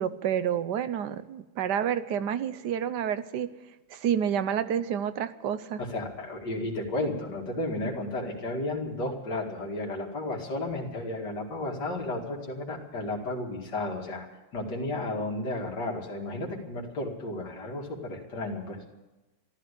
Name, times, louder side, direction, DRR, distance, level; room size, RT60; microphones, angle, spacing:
voice 1, 0.0-3.5 3.9-5.8, right 9 dB, 75° right, 13 dB, 1.4 m, -29 dB
voice 2, 5.8-14.3 14.5-18.8, left 2 dB, 75° left, 0 dB, 2.9 m, -33 dB
14.0 x 12.0 x 8.3 m, 1.1 s
omnidirectional pair, 1.8 m